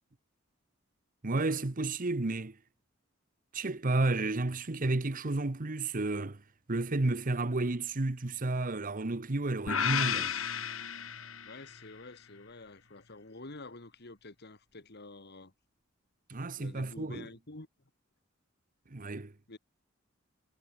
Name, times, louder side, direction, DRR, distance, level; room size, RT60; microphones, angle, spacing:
voice 1, 1.2-2.6 3.5-6.4 6.7-10.3 16.3-17.3 18.9-19.3, right 2 dB, 45° right, 1.0 m, -31 dB
sound 1, 9.7-11.9, left 7 dB, 85° left, 2.8 m, -33 dB
voice 2, 11.4-15.5 16.5-17.7 19.5-19.6, left 2 dB, 55° left, 2.4 m, -48 dB
head